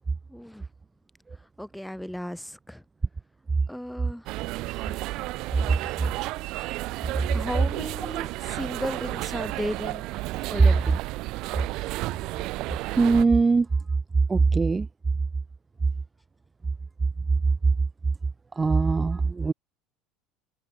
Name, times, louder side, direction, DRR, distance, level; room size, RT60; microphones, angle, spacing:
voice 1, 0.3-0.7 1.6-2.8 3.7-4.3 7.3-10.0 10.5-10.9, equal, 5° left, 6.0 m, -35 dB
sound 1, 4.3-13.3, right 19 dB, 60° right, 0.8 m, -32 dB
voice 2, 13.0-13.7 14.3-14.9 18.6-19.5, right 4 dB, 20° right, 0.4 m, -21 dB
hypercardioid pair, 70°, 0 cm